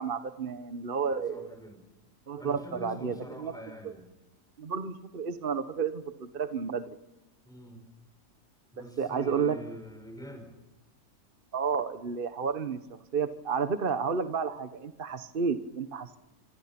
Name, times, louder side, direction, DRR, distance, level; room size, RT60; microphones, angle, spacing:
voice 1, 0.0-1.5 2.3-3.5 3.8-3.9 4.6-7.0 8.8-9.6 11.5-12.8 13.1-16.2, right 6 dB, 35° right, 10 dB, 1.2 m, -31 dB
voice 2, 1.3-1.8 2.4-4.1 7.5-7.8 8.7-10.6, equal, ahead, 4 dB, 5.5 m, -45 dB
27.0 x 24.5 x 5.9 m, 1.0 s
omnidirectional pair, 1.7 m